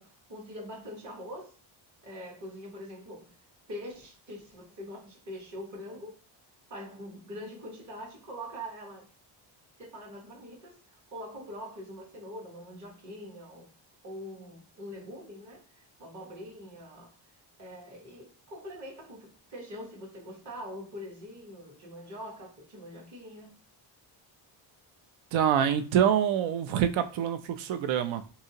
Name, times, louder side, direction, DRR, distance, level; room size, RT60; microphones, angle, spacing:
voice 1, 0.0-1.6 2.0-3.4 3.7-6.2 6.7-9.1 9.8-13.7 14.0-17.3 17.6-23.6, equal, 35° right, 1.2 m, -43 dB
voice 2, 25.3-28.2, right 9 dB, 70° right, 0.6 m, -26 dB
2.7 x 2.7 x 2.7 m
cardioid pair, 90°, 49 cm